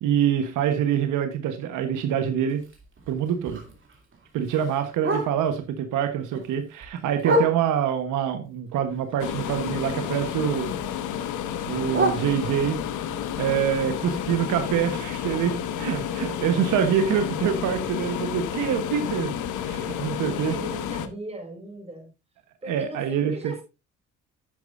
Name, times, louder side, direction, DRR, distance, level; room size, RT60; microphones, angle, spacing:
voice 1, 0.0-2.6 3.1-3.6 4.3-10.7 11.7-12.8 13.4-19.3 19.6-20.5 22.7-23.6, right 9 dB, 90° right, 1.2 m, -25 dB
Bark, 2.5-5.7 6.1-8.0 8.4-10.3 10.5-12.9 13.3-17.2 17.6-17.7 18.0-18.3 18.8-18.9 19.2-19.3 19.8-19.9, right 1 dB, 40° right, 2.8 m, -32 dB
sound 1, 9.2-21.1, left 9 dB, 80° left, 1.1 m, -31 dB
voice 2, 20.3-22.1 22.6-23.6, right 1 dB, 20° right, 4.8 m, -37 dB
10.5 x 8.6 x 2.6 m
cardioid pair, 90°, 30 cm